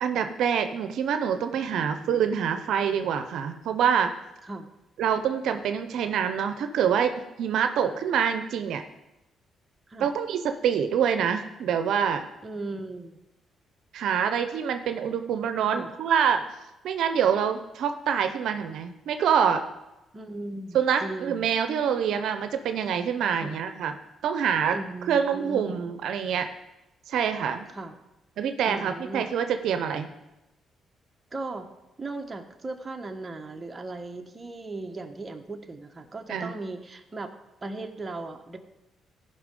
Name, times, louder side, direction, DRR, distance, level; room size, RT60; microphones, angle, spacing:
voice 1, 0.0-4.1 5.0-8.8 10.0-12.2 13.9-16.4 16.8-19.6 20.7-23.9 24.2-24.8 25.1-26.5 27.1-27.6 28.4-30.1 36.3-36.5, right 8 dB, 75° right, 8 dB, 0.7 m, -26 dB
voice 2, 1.9-2.3 4.4-4.7 7.8-8.0 9.9-10.1 12.4-13.2 15.7-15.9 20.1-21.5 23.3-23.6 24.7-25.8 27.7-27.9 28.7-29.3 31.3-31.7 32.0-37.3 37.6-38.6, right 2 dB, 25° right, 4 dB, 1.1 m, -37 dB
14.5 x 5.5 x 5.3 m, 0.97 s
cardioid pair, 90°, 0 cm